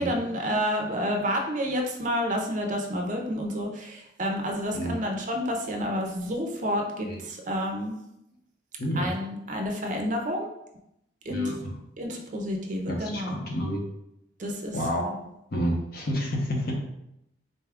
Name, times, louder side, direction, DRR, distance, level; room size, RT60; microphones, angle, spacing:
voice 1, 0.0-7.9 9.0-10.5 11.2-11.4 12.0-13.4 14.4-14.8, equal, 40° right, 2 dB, 0.5 m, -29 dB
voice 2, 8.8-9.1 11.3-11.7 12.9-13.8 14.7-15.1 15.5-16.7, equal, 50° left, 0 dB, 0.8 m, -29 dB
4.0 x 2.3 x 3.5 m, 0.82 s
head